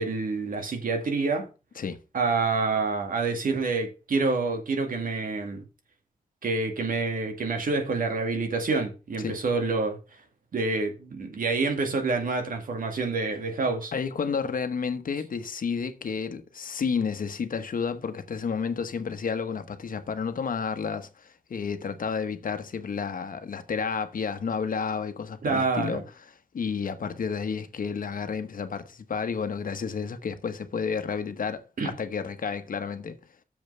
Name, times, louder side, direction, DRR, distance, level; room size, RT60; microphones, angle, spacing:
voice 1, 0.0-1.5 2.1-5.6 6.4-10.0 10.5-13.9 25.4-26.0 31.8-31.9, right 3 dB, 90° right, 2.2 m, -27 dB
voice 2, 13.9-26.0 26.5-33.2, left 6 dB, 80° left, 1.1 m, -31 dB
7.1 x 5.4 x 6.7 m
wide cardioid pair, 90°, 14 cm